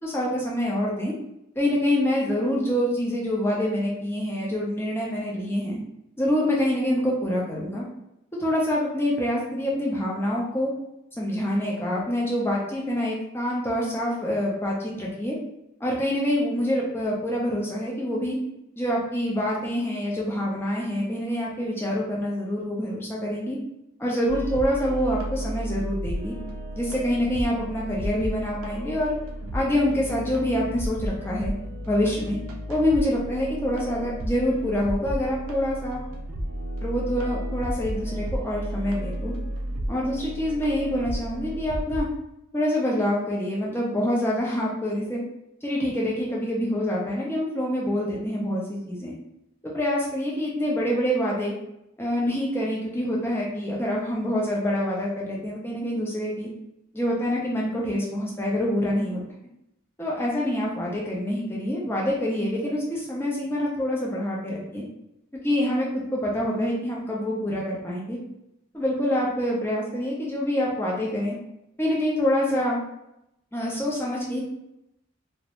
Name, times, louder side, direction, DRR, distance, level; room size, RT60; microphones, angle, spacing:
voice 1, 0.0-1.1 1.6-5.8 6.2-7.8 8.4-10.7 11.2-15.4 15.8-18.4 18.8-23.6 24.0-26.3 26.7-29.2 29.5-31.5 31.9-32.4 32.7-36.0 36.8-39.3 39.9-42.1 42.5-45.2 45.6-49.1 49.6-51.5 52.0-56.5 56.9-59.2 60.0-64.8 65.4-68.2 68.7-71.3 71.8-72.8 73.5-74.4, left 1 dB, 10° left, -4 dB, 0.5 m, -26 dB
sound 1, 24.3-42.0, right 1 dB, 75° right, 0.4 m, -33 dB
2.4 x 2.1 x 2.9 m, 0.84 s
head